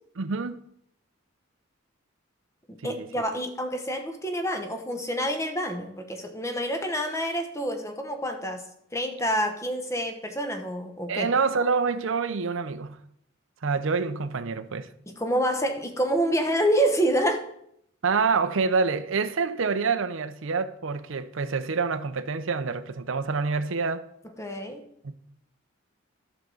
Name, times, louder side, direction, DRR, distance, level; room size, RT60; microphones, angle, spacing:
voice 1, 0.2-0.6 2.8-3.1 11.1-13.0 13.6-14.9 18.0-24.1 25.0-25.1, right 4 dB, 70° right, 0.6 m, -27 dB
voice 2, 2.8-8.6 8.9-11.3 15.1-17.5 24.4-24.8, equal, 15° left, 0.9 m, -27 dB
12.0 x 6.4 x 3.9 m
head